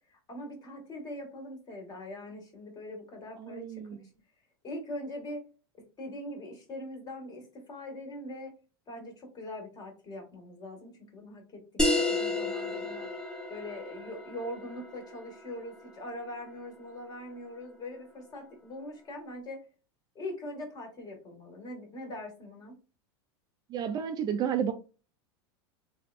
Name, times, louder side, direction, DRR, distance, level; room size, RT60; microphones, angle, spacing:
voice 1, 0.1-3.8 4.6-5.4 6.0-8.5 8.9-11.6 11.9-13.1 13.5-19.6 20.2-22.8, left 1 dB, 30° left, 1.7 m, -42 dB
voice 2, 3.4-4.0 23.7-24.7, right 8 dB, 30° right, 0.4 m, -31 dB
sound 1, 11.8-16.9, left 2 dB, 5° left, 1.1 m, -32 dB
3.4 x 3.3 x 2.5 m
supercardioid pair, 130°, 14 cm